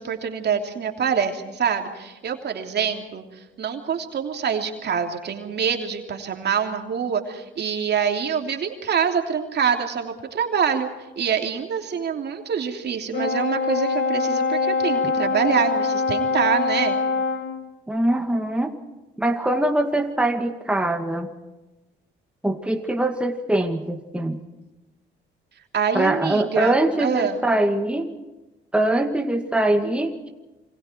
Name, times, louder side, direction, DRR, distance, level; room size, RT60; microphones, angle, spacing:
voice 1, 0.0-10.9 11.2-17.0 25.7-27.4, right 7 dB, 55° right, 4 dB, 3.1 m, -25 dB
Brass instrument, 13.1-17.5, left 4 dB, 60° left, 6.6 m, -23 dB
voice 2, 17.9-18.7 19.2-21.3 22.4-24.4 25.9-28.1 28.7-30.3, right 1 dB, 5° right, 4 dB, 2.1 m, -22 dB
27.5 x 24.0 x 4.6 m, 1.1 s
cardioid pair, 90°, 20 cm